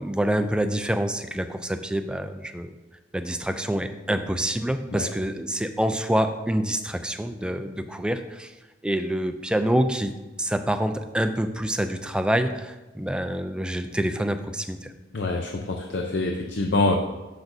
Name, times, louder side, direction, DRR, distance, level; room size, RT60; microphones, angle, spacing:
voice 1, 0.0-2.7 3.1-8.5 8.8-10.1 10.4-14.9, right 1 dB, 5° right, 8 dB, 0.3 m, -26 dB
voice 2, 15.1-17.0, left 2 dB, 60° left, 2 dB, 0.6 m, -25 dB
12.0 x 5.3 x 2.7 m, 1.1 s
head